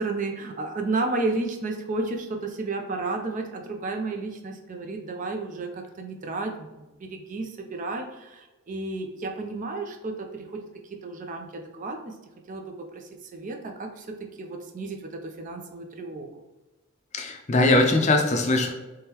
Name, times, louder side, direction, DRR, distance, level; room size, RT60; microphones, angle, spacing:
voice 1, 0.0-12.1 12.5-12.6 12.9-14.1 14.4-16.3, right 3 dB, 35° right, 3 dB, 0.4 m, -32 dB
voice 2, 17.1-18.7, left 2 dB, 35° left, 3 dB, 0.4 m, -21 dB
3.6 x 3.3 x 2.9 m, 1.1 s
head